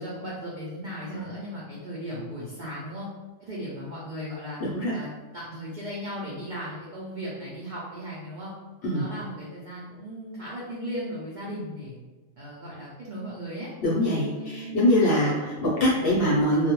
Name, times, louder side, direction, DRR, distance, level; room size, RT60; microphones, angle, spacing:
voice 1, 0.0-3.1 3.4-4.6 4.9-8.5 8.9-12.0 12.4-13.7 14.3-14.8 15.2-15.5 15.9-16.1, equal, 75° right, -6 dB, 0.4 m, -37 dB
voice 2, 4.6-5.0 8.8-9.1 13.8-16.7, left 1 dB, 55° left, -6 dB, 0.7 m, -23 dB
2.3 x 2.1 x 2.9 m, 1.2 s
omnidirectional pair, 1.4 m